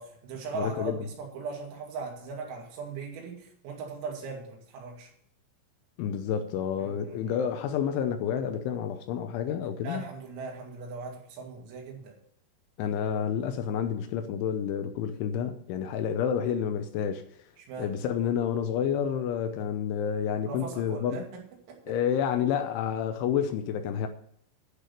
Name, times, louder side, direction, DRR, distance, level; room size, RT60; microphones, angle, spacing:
voice 1, 0.0-5.1 6.8-7.3 9.8-12.2 17.6-18.0 20.5-21.4 21.7-21.9, right 4 dB, 80° right, 5.0 m, -39 dB
voice 2, 0.5-1.1 6.0-10.0 12.8-17.2 17.8-21.2 21.9-24.1, left 8 dB, 80° left, 3.0 m, -29 dB
11.5 x 6.2 x 8.4 m
omnidirectional pair, 5.9 m